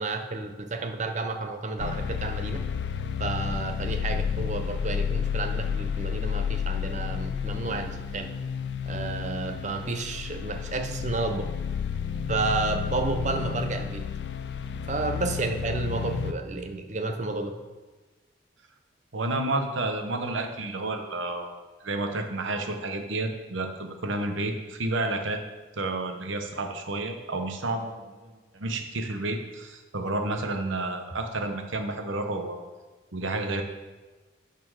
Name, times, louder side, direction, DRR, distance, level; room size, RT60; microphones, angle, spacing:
voice 1, 0.0-2.6 3.2-8.3 8.9-11.5 12.3-14.0 14.9-17.5, right 3 dB, 35° right, 6 dB, 0.6 m, -31 dB
sound 1, 1.8-16.3, left 7 dB, 55° left, 0.4 m, -31 dB
voice 2, 19.1-21.5 21.8-25.4 25.8-32.6 33.1-33.6, right 2 dB, 75° right, 5 dB, 1.0 m, -30 dB
9.4 x 4.3 x 6.2 m, 1.3 s
head